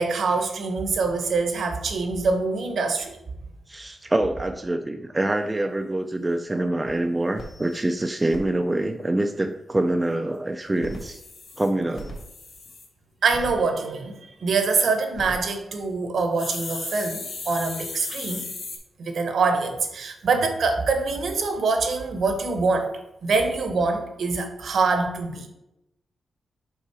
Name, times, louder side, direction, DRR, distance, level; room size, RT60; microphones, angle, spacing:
voice 1, 0.0-3.2 13.2-18.5 19.0-22.9 23.2-25.5, right 4 dB, 60° right, 6 dB, 0.8 m, -24 dB
voice 2, 3.7-11.2 11.6-12.1, right 1 dB, 15° right, 5 dB, 0.3 m, -25 dB
sound 1, 6.2-6.3 6.7-6.8 7.0-7.1 7.4-8.4 10.7-12.9 13.3-13.5 14.9-15.3 16.4-18.8, left 3 dB, 55° left, 1.4 m, -36 dB
5.5 x 3.8 x 4.8 m, 0.87 s
wide cardioid pair, 160°, 0 cm